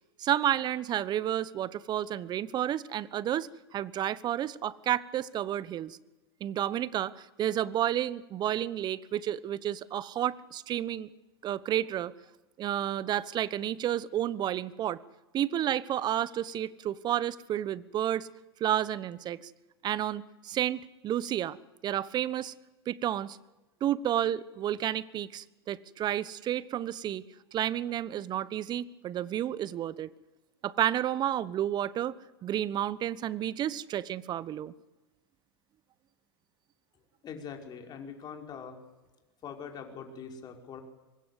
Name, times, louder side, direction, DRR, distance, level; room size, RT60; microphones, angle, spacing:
voice 1, 0.2-6.0 6.4-11.1 11.4-12.1 12.6-15.0 15.3-18.3 18.6-19.4 19.8-21.6 21.8-22.5 22.9-23.4 23.8-27.2 27.5-30.1 30.6-32.1 32.4-34.7, right 11 dB, 35° right, 19 dB, 1.1 m, -31 dB
voice 2, 37.2-38.8 39.4-40.8, left 6 dB, 35° left, 3 dB, 5.1 m, -43 dB
24.5 x 20.5 x 8.3 m, 1.1 s
hypercardioid pair, 95°, 13 cm